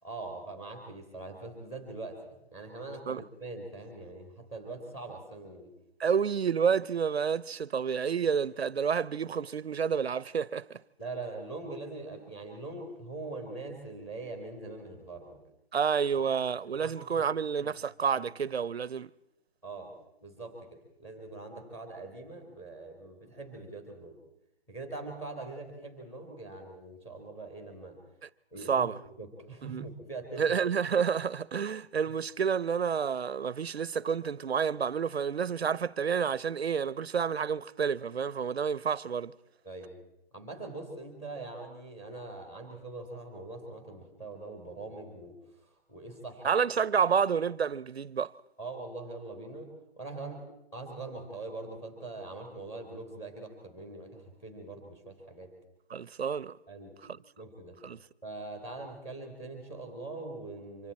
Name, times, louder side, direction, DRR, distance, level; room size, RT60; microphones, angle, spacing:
voice 1, 0.0-5.7 11.0-15.4 16.8-17.2 17.6-17.8 18.1-18.2 19.6-19.9 20.2-24.2 24.7-28.0 28.5-28.9 29.2-30.6 39.6-39.9 40.3-45.4 45.9-46.5 48.6-49.7 50.0-50.4 50.7-55.5 56.7-57.0 57.4-57.8 58.2-60.9, right 2 dB, 10° left, 3.3 m, -42 dB
voice 2, 6.0-10.6 15.7-19.1 28.2-28.3 28.7-29.0 29.7-29.9 30.4-39.3 46.4-48.3 55.9-56.5 57.8-58.0, right 7 dB, 80° right, 0.8 m, -29 dB
27.0 x 25.5 x 4.3 m
hypercardioid pair, 170°, 31 cm